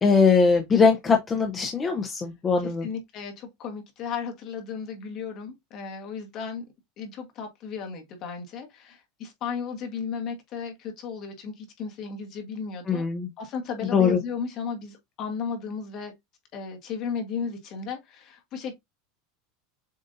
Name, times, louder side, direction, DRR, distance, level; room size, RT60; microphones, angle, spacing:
voice 1, 0.0-2.9 12.9-13.3 13.9-14.2, left 5 dB, 25° left, 0.8 m, -21 dB
voice 2, 2.6-6.6 7.0-13.0 13.4-16.1 16.5-18.7, left 6 dB, 50° left, 1.5 m, -35 dB
7.2 x 2.6 x 2.6 m
supercardioid pair, 115°, 0 cm